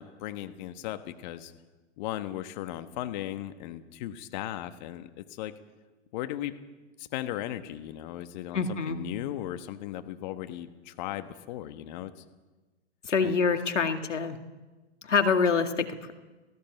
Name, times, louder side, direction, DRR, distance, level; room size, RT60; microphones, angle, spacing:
voice 1, 0.0-1.5 2.0-5.5 6.1-6.5 7.0-12.2 13.0-13.3, left 13 dB, 40° left, 10 dB, 1.4 m, -37 dB
voice 2, 8.5-9.0 13.1-14.4 15.0-16.1, left 5 dB, 85° left, 7 dB, 2.2 m, -26 dB
18.5 x 17.0 x 9.1 m, 1.2 s
hypercardioid pair, 125°, 36 cm